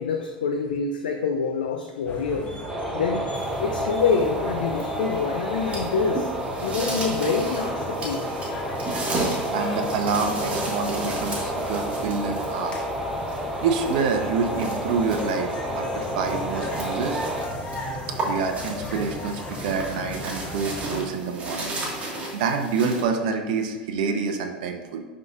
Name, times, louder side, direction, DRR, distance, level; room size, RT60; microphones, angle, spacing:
voice 1, 0.0-2.5 2.9-3.3 3.6-6.3 6.6-8.2, left 5 dB, 65° left, 3 dB, 0.5 m, -26 dB
sound 1, 2.1-21.1, left 1 dB, 20° left, 1.3 m, -36 dB
sound 2, 2.7-17.5, right 1 dB, 10° right, 0.8 m, -31 dB
sound 3, 3.3-23.0, right 2 dB, 25° right, 1.6 m, -35 dB
voice 2, 9.5-12.7 13.6-17.2 18.2-25.0, right 5 dB, 55° right, 4 dB, 0.7 m, -27 dB
10.5 x 3.8 x 2.4 m, 1.4 s
figure-of-eight pair, 80°, 5 cm